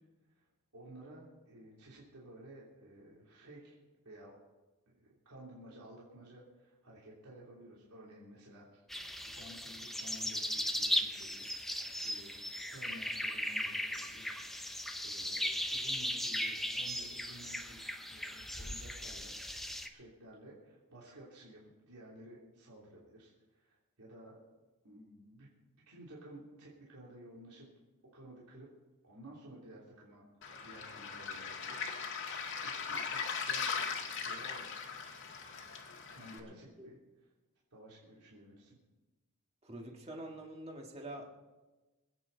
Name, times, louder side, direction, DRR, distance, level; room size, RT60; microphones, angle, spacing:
voice 1, 0.3-3.8 4.0-4.4 4.9-8.8 9.2-12.4 12.6-17.8 18.1-19.3 19.8-24.4 24.8-25.5 25.9-27.7 28.1-28.7 29.0-30.2 30.6-31.9 32.6-34.8 36.1-37.0 37.7-38.8, right 1 dB, 90° right, -5 dB, 3.2 m, -54 dB
sound 1, 8.9-19.9, equal, ahead, 0.8 m, -37 dB
Waves surf, 30.4-36.4, left 5 dB, 55° left, 1.8 m, -39 dB
voice 2, 39.6-41.3, right 1 dB, 30° right, 1 dB, 2.0 m, -45 dB
26.5 x 9.3 x 4.0 m, 1.2 s
head